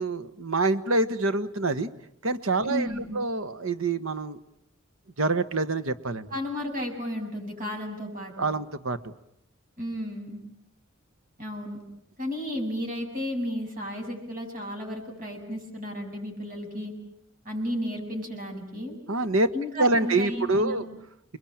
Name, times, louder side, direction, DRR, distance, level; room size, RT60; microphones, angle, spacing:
voice 1, 0.0-1.9 2.2-4.4 5.2-6.3 8.4-9.1 19.1-19.5 19.8-20.8, right 2 dB, 90° right, 13 dB, 1.4 m, -26 dB
voice 2, 2.7-3.2 6.3-8.3 9.8-10.4 11.4-11.8 12.2-16.9 17.4-19.0 19.5-20.9, equal, 45° right, 2 dB, 7.6 m, -33 dB
29.5 x 21.5 x 8.9 m, 0.76 s
head